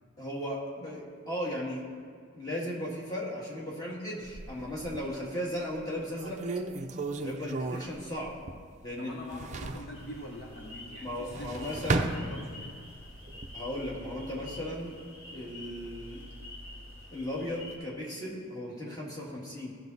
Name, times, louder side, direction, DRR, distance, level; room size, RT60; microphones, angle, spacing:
voice 1, 0.2-1.8 2.3-6.4 7.2-8.4 8.8-9.4 11.0-12.4 13.5-15.0 15.3-16.2 17.1-19.7, left 1 dB, 15° left, -4 dB, 1.8 m, -36 dB
sound 1, 4.2-5.2 5.7-5.8 6.2-8.8 9.1-9.9 11.1-12.8 13.3-13.9, right 3 dB, 35° right, 0.5 m, -34 dB
voice 2, 9.0-12.8, left 1 dB, 50° left, -1 dB, 0.9 m, -44 dB
sound 2, 9.9-17.8, left 1 dB, 75° left, 2.0 m, -47 dB
15.0 x 6.0 x 4.0 m, 2.1 s
head